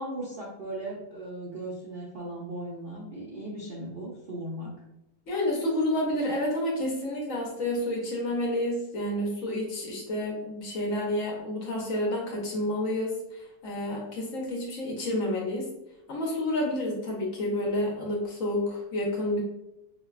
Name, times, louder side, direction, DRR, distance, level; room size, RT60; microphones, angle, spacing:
voice 1, 0.0-4.7, right 1 dB, 50° right, -6 dB, 0.6 m, -37 dB
voice 2, 5.3-15.7 16.1-19.4, left 1 dB, 60° left, -1 dB, 1.0 m, -29 dB
5.1 x 2.2 x 2.3 m, 0.89 s
omnidirectional pair, 1.7 m